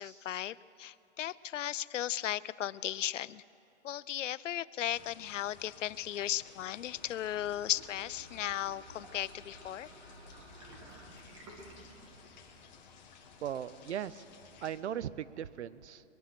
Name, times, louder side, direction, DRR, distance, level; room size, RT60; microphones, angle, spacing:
voice 1, 0.0-3.4 3.8-9.9, left 12 dB, 90° left, 19 dB, 0.5 m, -36 dB
sound 1, 4.8-14.8, left 6 dB, 35° left, 1.4 m, -56 dB
sound 2, 6.6-12.7, right 1 dB, 25° right, 1.8 m, -54 dB
voice 2, 13.4-14.2 14.6-16.0, right 9 dB, 65° right, 18 dB, 0.6 m, -38 dB
22.0 x 9.9 x 5.9 m, 2.7 s
hypercardioid pair, 175°, 37 cm